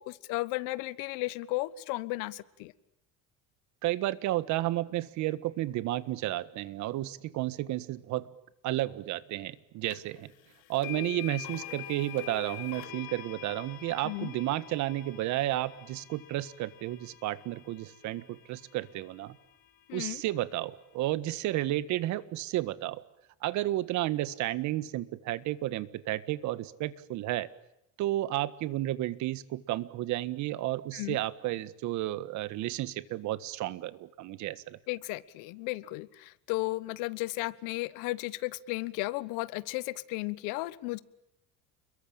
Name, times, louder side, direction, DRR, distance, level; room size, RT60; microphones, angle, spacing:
voice 1, 0.0-2.7 14.0-14.3 19.9-20.2 30.9-31.2 34.9-41.0, left 20 dB, 90° left, 18 dB, 1.3 m, -34 dB
voice 2, 3.8-8.3 8.6-10.3 10.7-19.4 19.9-23.0 23.4-27.5 28.0-34.8, right 15 dB, 65° right, 16 dB, 1.6 m, -32 dB
sound 1, 9.9-10.0 10.8-18.9, left 11 dB, 70° left, 3.8 m, -45 dB
29.5 x 22.5 x 8.8 m, 0.82 s
cardioid pair, 140°, 31 cm